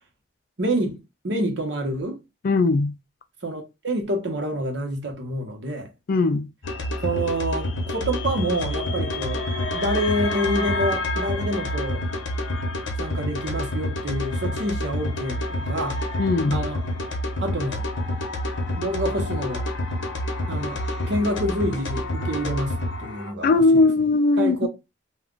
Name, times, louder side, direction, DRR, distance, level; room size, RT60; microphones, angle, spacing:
voice 1, 0.6-2.2 3.4-5.9 7.0-9.5 9.7-12.1 13.0-16.0 16.5-16.8 17.4-17.9 18.8-19.7 20.5-23.8 24.4-24.7, right 1 dB, 70° right, 1.0 m, -27 dB
voice 2, 2.4-2.9 6.1-6.5 16.2-16.6 23.4-24.7, left 3 dB, 50° left, 0.4 m, -19 dB
sound 1, 6.6-23.3, left 1 dB, 80° left, 0.8 m, -28 dB
2.4 x 2.2 x 3.7 m
head